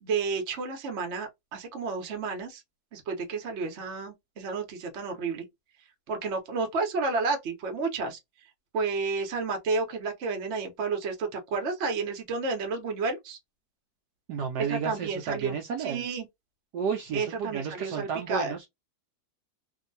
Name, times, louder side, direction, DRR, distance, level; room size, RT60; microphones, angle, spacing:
voice 1, 0.0-2.6 2.9-5.5 6.1-8.2 8.7-13.4 14.7-16.3 17.1-18.5, right 4 dB, 45° right, 1.0 m, -31 dB
voice 2, 14.3-16.1 16.7-18.7, right 6 dB, 70° right, 1.1 m, -32 dB
2.8 x 2.6 x 2.6 m
omnidirectional pair, 2.1 m